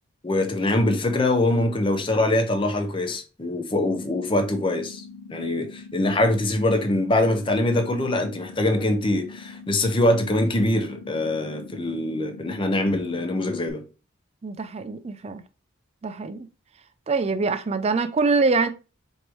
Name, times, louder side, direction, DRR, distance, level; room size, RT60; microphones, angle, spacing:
voice 1, 0.2-5.0 5.3-13.8, left 1 dB, 25° left, 0.5 m, -23 dB
sound 1, 3.7-13.7, left 4 dB, 70° left, 0.6 m, -43 dB
voice 2, 14.4-15.4 16.0-16.5 17.1-18.7, right 4 dB, 30° right, 0.3 m, -24 dB
4.6 x 2.7 x 3.0 m
head